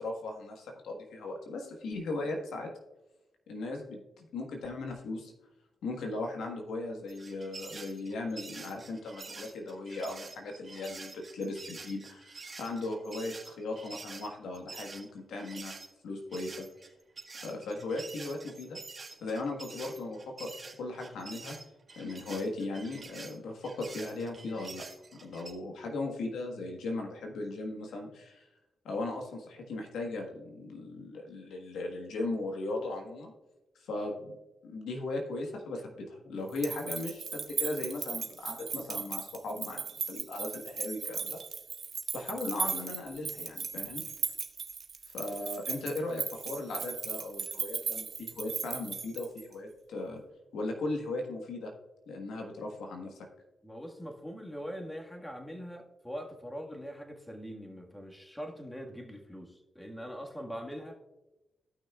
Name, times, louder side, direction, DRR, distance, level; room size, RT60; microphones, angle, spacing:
voice 1, 0.0-2.7 3.5-5.3 5.8-15.7 16.0-16.7 17.4-18.8 19.2-20.5 20.8-21.6 21.9-24.8 25.2-28.4 28.8-33.3 33.8-34.3 34.6-39.8 40.1-41.4 42.1-44.0 45.1-50.2 50.5-51.7 52.1-53.1, left 2 dB, 85° left, 2 dB, 1.4 m, -37 dB
sound 1, 7.1-15.9 16.3-25.5, right 4 dB, 40° right, 1.7 m, -47 dB
sound 2, 36.5-49.5, right 6 dB, 60° right, 1.0 m, -37 dB
voice 2, 53.6-61.0, equal, 10° left, 2 dB, 1.7 m, -42 dB
15.5 x 6.1 x 2.4 m, 1.0 s
supercardioid pair, 50°, 0 cm